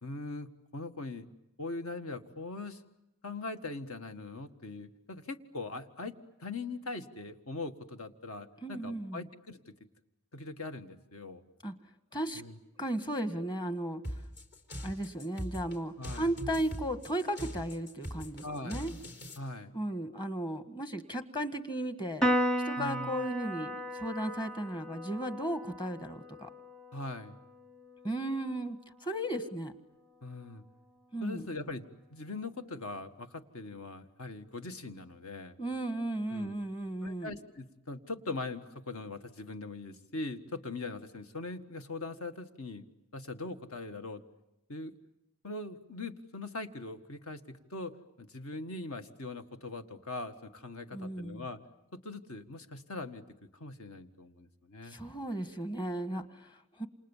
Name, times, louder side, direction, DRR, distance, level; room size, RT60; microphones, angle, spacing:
voice 1, 0.0-1.3 1.6-2.8 3.2-6.1 6.4-9.6 10.3-11.4 12.3-12.6 16.0-16.3 18.4-18.9 19.4-19.7 22.8-23.1 26.9-27.4 30.2-30.6 31.2-35.6 36.3-36.6 37.0-44.2 44.7-44.9 45.4-51.6 51.9-53.2 53.6-55.0, left 3 dB, 65° left, 8 dB, 1.7 m, -41 dB
voice 2, 8.6-9.2 11.6-11.7 12.1-12.4 12.8-14.0 14.8-18.9 19.7-22.2 22.6-26.5 28.0-29.7 31.1-31.5 35.6-37.4 50.9-51.4 54.9-56.9, right 1 dB, 20° left, 10 dB, 1.6 m, -35 dB
sound 1, 14.0-19.4, equal, 50° left, 3.9 m, -41 dB
Piano, 22.2-28.9, equal, 5° left, 0.9 m, -35 dB
28.5 x 28.0 x 7.3 m, 0.91 s
head